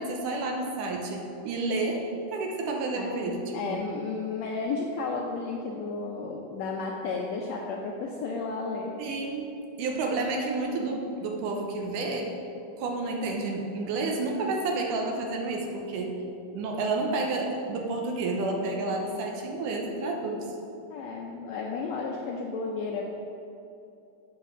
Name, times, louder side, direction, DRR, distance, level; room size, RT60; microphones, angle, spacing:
voice 1, 0.0-3.8 9.0-9.5 9.8-12.3 12.8-16.1 16.5-20.5, right 3 dB, 75° right, 1 dB, 2.4 m, -30 dB
voice 2, 3.0-8.9 20.9-23.0, left 4 dB, 80° left, -1 dB, 1.6 m, -33 dB
8.4 x 5.6 x 6.2 m, 2.7 s
omnidirectional pair, 3.8 m